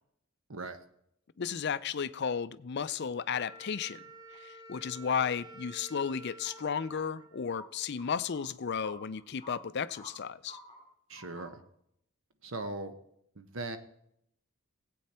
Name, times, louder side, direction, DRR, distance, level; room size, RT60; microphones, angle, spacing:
voice 1, 1.4-4.0 4.4-10.6, left 6 dB, 50° left, 0.5 m, -34 dB
Wind instrument woodwind instrument, 3.3-8.1, right 2 dB, 20° right, 2.2 m, -51 dB
sound 1, 4.3-4.4 5.0-5.1 6.3-6.5 6.9-7.1 7.5-7.6 8.0-8.5 8.8-8.9 9.2-10.1 10.4-10.8 11.1-11.5, left 1 dB, 25° left, 3.0 m, -51 dB
voice 2, 11.1-11.6 12.4-12.9 13.4-13.8, right 2 dB, 65° right, 1.1 m, -39 dB
17.0 x 8.5 x 4.3 m
head